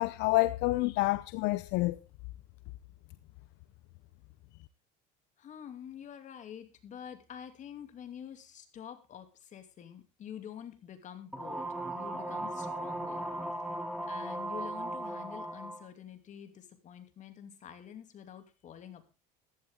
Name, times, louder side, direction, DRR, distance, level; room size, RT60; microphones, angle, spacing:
voice 1, 0.0-2.0, left 20 dB, 70° left, 0.6 m, -28 dB
voice 2, 5.4-11.7 11.9-13.2 14.0-19.0, left 9 dB, 40° left, 2.7 m, -47 dB
sound 1, 11.3-15.8, right 1 dB, ahead, 2.7 m, -37 dB
Wind instrument woodwind instrument, 12.1-15.8, left 2 dB, 20° right, 4.1 m, -50 dB
15.0 x 12.0 x 3.7 m
cardioid pair, 125°, 19 cm